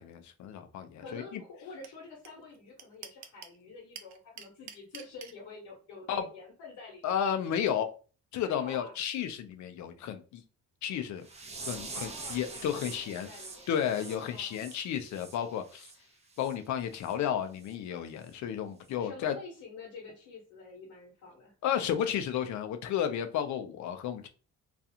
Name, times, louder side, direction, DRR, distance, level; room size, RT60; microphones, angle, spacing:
voice 1, 0.0-1.4 6.1-6.3 7.0-7.9 8.3-10.4 10.8-11.3 11.7-13.3 13.7-15.9 16.4-19.3 21.6-24.3, left 9 dB, 70° left, 0.5 m, -32 dB
voice 2, 1.0-7.2 8.4-8.9 11.9-14.6 19.0-21.5, left 3 dB, 85° left, 1.0 m, -48 dB
sound 1, 1.8-1.9 2.2-2.3 2.5-3.6 3.9-5.3, right 8 dB, 65° right, 0.5 m, -45 dB
sound 2, 11.2-16.0 16.3-16.6 17.0-17.1 17.6-17.7 18.2-18.3, right 3 dB, 20° right, 0.6 m, -45 dB
2.4 x 2.3 x 2.7 m
cardioid pair, 90°, 30 cm